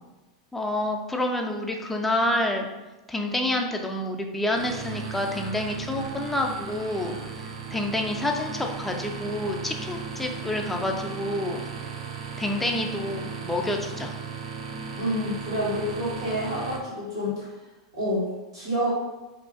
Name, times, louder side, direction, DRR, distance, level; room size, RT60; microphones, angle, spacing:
voice 1, 0.5-2.7 3.1-11.7 12.4-14.2, left 1 dB, 5° left, 2 dB, 0.3 m, -28 dB
sound 1, 4.5-16.8, right 5 dB, 70° right, 0.4 m, -36 dB
voice 2, 15.0-17.5 17.9-18.3 18.5-18.9, equal, 90° right, -6 dB, 1.3 m, -28 dB
2.5 x 2.2 x 2.5 m, 1.1 s
hypercardioid pair, 100°, 3 cm